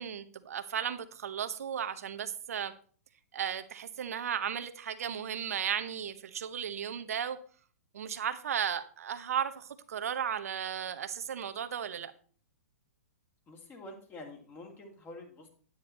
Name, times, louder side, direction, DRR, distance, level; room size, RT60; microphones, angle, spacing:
voice 1, 0.0-2.7 3.3-7.4 7.9-12.1, right 8 dB, 65° right, 9 dB, 0.9 m, -35 dB
voice 2, 13.5-15.5, left 2 dB, 25° left, 2 dB, 2.7 m, -47 dB
9.6 x 9.0 x 4.2 m, 0.43 s
hypercardioid pair, 120°, 8 cm